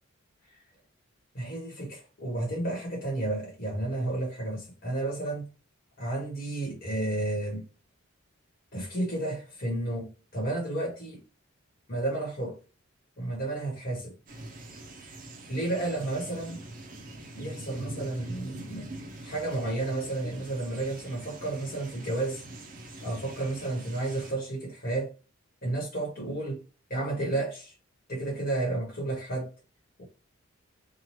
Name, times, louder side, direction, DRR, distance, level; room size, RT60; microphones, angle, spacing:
voice 1, 1.3-5.5 6.0-7.7 8.7-11.2 11.9-12.6 13.2-14.1 15.5-16.6 17.3-18.9 19.2-22.4 23.0-25.1 25.6-26.6 26.9-27.7 28.1-29.5 30.0-30.1, right 2 dB, 45° left, 1.1 m, -32 dB
sound 1, 14.3-24.3, right 2 dB, 40° right, 0.5 m, -44 dB
3.0 x 2.2 x 2.9 m
head